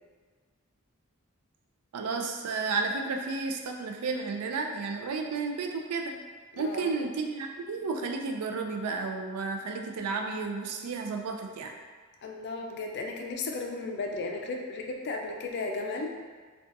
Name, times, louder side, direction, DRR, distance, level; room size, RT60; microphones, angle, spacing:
voice 1, 1.9-6.2 6.6-11.7, right 4 dB, 85° right, 3 dB, 0.4 m, -32 dB
voice 2, 6.5-7.0 12.2-16.1, left 3 dB, 50° left, 1 dB, 0.4 m, -35 dB
3.8 x 2.3 x 2.6 m, 1.5 s
head